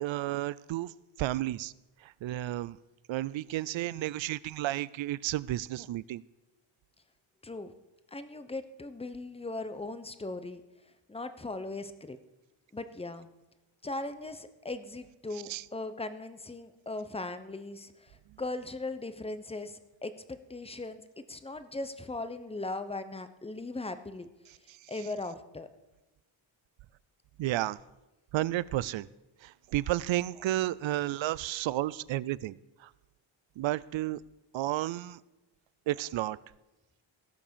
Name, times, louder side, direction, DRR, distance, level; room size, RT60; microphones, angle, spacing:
voice 1, 0.0-0.9 1.2-1.7 2.0-2.8 3.1-6.2 15.5-15.6 27.4-27.8 28.3-29.1 29.4-32.9 33.6-34.2 34.5-35.2 35.9-36.4, right 15 dB, 70° right, 21 dB, 0.5 m, -32 dB
voice 2, 8.1-10.6 11.1-12.2 12.7-13.3 13.8-21.0 21.3-24.3 24.9-25.7, left 2 dB, 10° left, 11 dB, 0.8 m, -39 dB
17.0 x 6.0 x 6.9 m, 1.0 s
cardioid pair, 120°, 49 cm